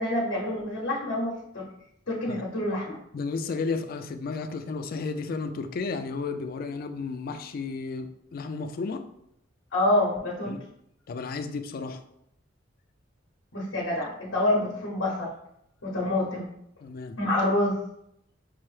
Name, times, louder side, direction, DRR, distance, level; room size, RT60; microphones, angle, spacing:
voice 1, 0.0-1.6 2.1-3.0 9.7-10.5 13.5-15.3 15.8-16.5 17.2-17.8, left 1 dB, 90° left, -3 dB, 0.8 m, -27 dB
voice 2, 3.1-9.0 10.5-10.6 11.1-12.0 16.8-17.1, left 4 dB, 50° left, 8 dB, 0.3 m, -33 dB
5.5 x 2.0 x 3.1 m, 0.77 s
head